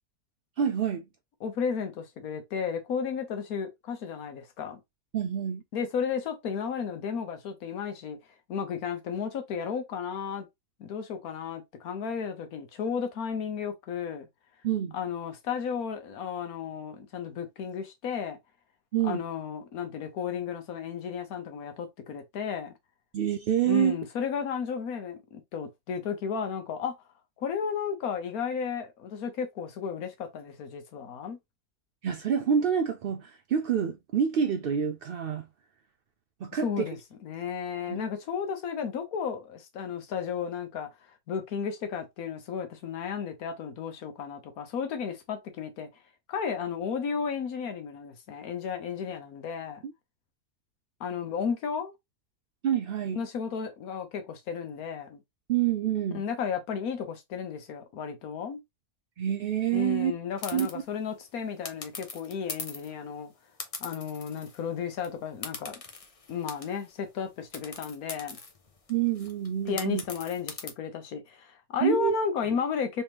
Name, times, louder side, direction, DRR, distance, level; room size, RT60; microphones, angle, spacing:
voice 1, 0.6-1.0 5.1-5.6 14.6-15.0 18.9-19.2 23.1-24.0 32.0-35.5 36.4-36.9 37.9-38.0 52.6-53.2 55.5-56.2 59.2-60.1 60.5-60.7 68.9-70.0 71.8-72.1, right 9 dB, 80° right, 0.5 m, -27 dB
voice 2, 1.4-4.8 5.7-8.2 8.5-10.5 10.8-14.3 14.9-18.4 19.0-22.7 23.7-26.9 27.4-31.4 36.6-40.9 41.3-45.9 46.3-49.8 51.0-51.9 53.2-55.2 56.1-58.6 59.7-63.3 63.8-65.8 66.3-68.4 69.6-73.0, left 6 dB, 80° left, 1.3 m, -33 dB
sound 1, 60.4-60.7 61.6-62.9 63.6-64.7 64.9-65.1 65.4-66.9 67.5-70.7, left 4 dB, 35° left, 0.6 m, -41 dB
3.4 x 3.3 x 2.9 m
omnidirectional pair, 1.5 m